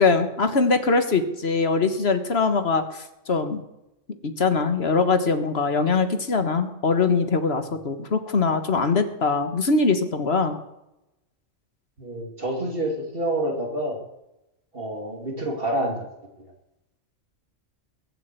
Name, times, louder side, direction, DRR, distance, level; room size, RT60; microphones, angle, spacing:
voice 1, 0.0-3.6 4.2-10.6, left 4 dB, 55° left, 8 dB, 1.7 m, -22 dB
voice 2, 12.0-14.0 14.7-16.0, right 1 dB, 45° right, 2 dB, 2.8 m, -27 dB
21.5 x 7.8 x 8.2 m, 0.91 s
omnidirectional pair, 1.3 m